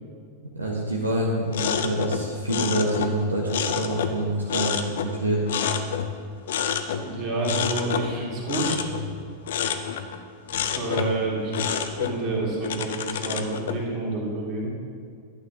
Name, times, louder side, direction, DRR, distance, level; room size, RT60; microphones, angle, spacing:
voice 1, 0.5-5.5, right 1 dB, 80° right, -3 dB, 1.0 m, -26 dB
sound 1, 1.5-4.2 4.5-6.2 6.5-7.1 7.4-10.2 10.5-11.2 11.5-13.8, left 8 dB, 60° left, 0.5 m, -28 dB
voice 2, 7.0-8.8 10.6-11.7 12.0-14.7, right 2 dB, 40° right, -3 dB, 2.4 m, -28 dB
11.5 x 8.7 x 2.8 m, 2.1 s
figure-of-eight pair, 90°, 0 cm